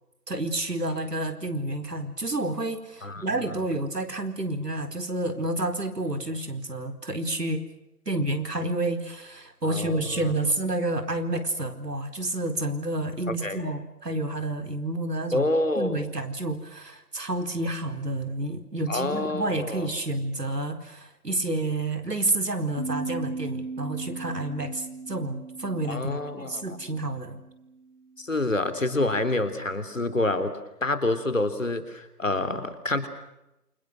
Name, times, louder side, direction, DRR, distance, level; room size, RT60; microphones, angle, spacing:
voice 1, 0.3-7.6 8.1-15.5 15.8-27.4, right 2 dB, 80° right, 8 dB, 4.4 m, -29 dB
voice 2, 9.6-10.3 13.3-13.6 15.3-16.0 18.9-19.9 25.9-26.6 28.2-30.5 30.8-33.1, left 2 dB, 55° left, 10 dB, 3.5 m, -27 dB
sound 1, 22.8-27.9, right 4 dB, 25° right, 2.8 m, -38 dB
28.5 x 26.5 x 6.4 m, 0.89 s
figure-of-eight pair, 180°, 47 cm